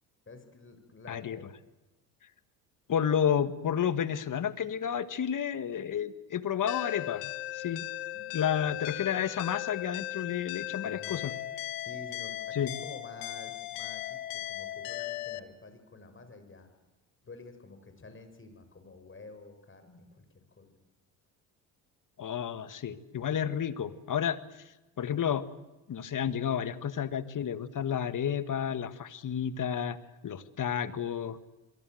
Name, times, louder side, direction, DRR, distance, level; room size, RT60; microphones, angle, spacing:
voice 1, 0.3-1.5 8.1-8.3 8.7-8.8 10.8-11.3 11.8-16.7 17.3-20.8, left 3 dB, 30° left, 8 dB, 6.1 m, -50 dB
voice 2, 2.9-7.8 8.3-11.3 12.5-12.7 22.2-24.4 25.0-25.5 25.9-30.0 30.2-31.4, left 8 dB, 45° left, 12 dB, 1.9 m, -31 dB
sound 1, 6.7-15.4, left 15 dB, 85° left, 1.4 m, -37 dB
28.0 x 22.5 x 8.0 m, 1.0 s
supercardioid pair, 70°, 43 cm